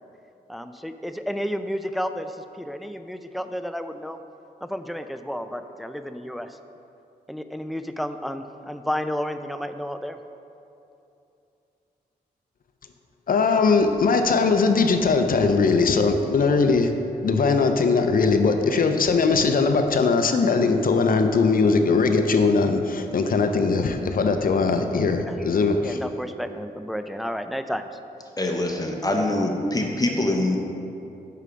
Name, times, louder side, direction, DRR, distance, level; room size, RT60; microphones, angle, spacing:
voice 1, 0.5-4.2 4.6-6.6 7.3-10.2 25.3-25.4 25.8-27.9, equal, ahead, 8 dB, 0.4 m, -31 dB
voice 2, 13.3-16.9 17.2-26.0, left 4 dB, 55° left, 7 dB, 0.5 m, -20 dB
voice 3, 28.4-30.6, left 1 dB, 20° left, 1 dB, 0.9 m, -24 dB
5.7 x 4.8 x 5.1 m, 2.8 s
cardioid pair, 50°, 17 cm